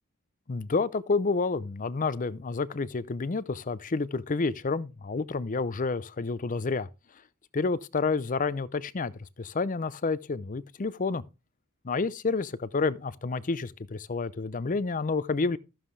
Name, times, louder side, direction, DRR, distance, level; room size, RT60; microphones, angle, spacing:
voice 1, 0.5-6.9 7.5-11.2 11.8-15.6, left 4 dB, 35° left, 0.5 m, -29 dB
14.0 x 7.3 x 3.2 m
head